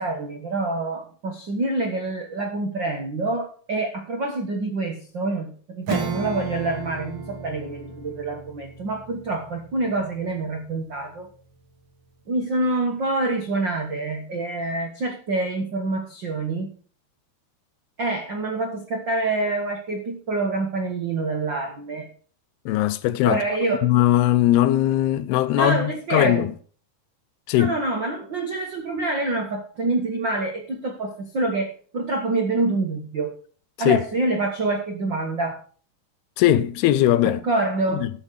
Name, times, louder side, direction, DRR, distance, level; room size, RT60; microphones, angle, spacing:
voice 1, 0.0-11.3 12.3-16.7 18.0-22.1 23.3-23.9 25.6-26.5 27.5-33.3 33.8-35.6 37.2-38.1, right 2 dB, 85° right, 1.0 m, -26 dB
Acoustic guitar / Strum, 5.9-11.9, right 4 dB, 50° right, 1.7 m, -35 dB
voice 2, 22.7-23.4 23.8-26.5 27.5-27.8 33.8-34.0 36.4-37.4 37.9-38.1, left 13 dB, 85° left, 2.7 m, -20 dB
13.5 x 6.2 x 6.4 m
omnidirectional pair, 4.6 m